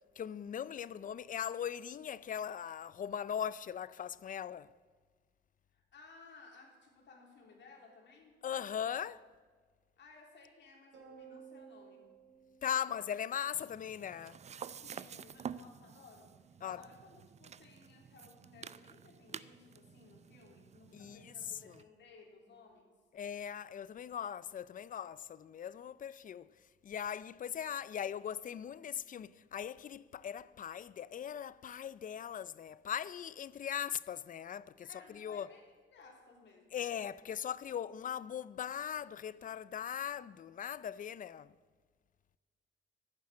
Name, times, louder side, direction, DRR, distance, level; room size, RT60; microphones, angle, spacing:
voice 1, 0.2-4.7 8.4-9.2 12.6-14.4 16.6-16.8 20.9-21.3 23.1-26.5 26.8-34.9 35.1-35.5 36.7-41.5, left 9 dB, 40° left, 0.4 m, -39 dB
voice 2, 5.7-8.4 10.0-12.1 14.8-16.3 16.6-22.9 34.8-36.8, left 4 dB, 65° left, 3.3 m, -58 dB
sound 1, 10.9-13.5, right 6 dB, 65° right, 4.0 m, -55 dB
sound 2, 13.5-21.8, right 7 dB, 35° right, 0.4 m, -50 dB
11.0 x 9.7 x 7.5 m
cardioid pair, 90°, 20 cm